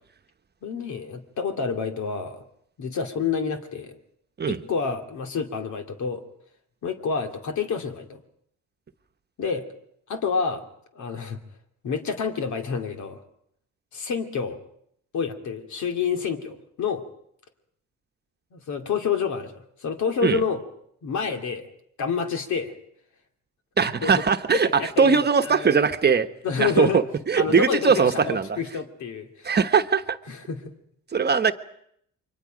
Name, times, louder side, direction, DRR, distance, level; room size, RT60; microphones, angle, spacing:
voice 1, 0.6-2.4 2.8-4.0 4.5-6.2 6.8-8.2 9.4-9.7 10.1-10.6 10.9-11.4 11.8-13.2 13.9-14.6 15.1-17.0 18.5-20.6 21.0-21.7 22.0-22.7 24.0-24.1 24.5-25.2 25.5-25.7 26.4-27.0 27.4-29.5 30.3-30.7, left 6 dB, 70° left, 5 dB, 2.4 m, -28 dB
voice 2, 23.8-26.3 26.6-28.6 29.4-30.2 31.1-31.5, right 6 dB, 35° right, 8 dB, 1.1 m, -21 dB
28.5 x 23.5 x 5.1 m, 0.70 s
cardioid pair, 90°, 30 cm